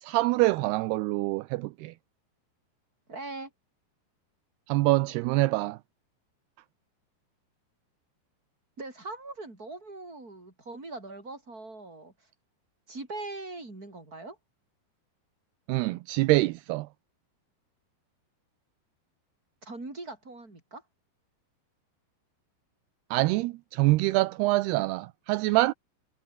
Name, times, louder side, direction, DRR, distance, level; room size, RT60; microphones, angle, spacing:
voice 1, 0.0-2.0 4.7-5.8 15.7-16.9 23.1-25.7, right 20 dB, 80° right, 2.5 m, -25 dB
voice 2, 3.1-3.5 8.8-12.1 12.9-14.4 19.6-20.8, right 2 dB, 20° right, 6.7 m, -41 dB
omnidirectional pair, 5.1 m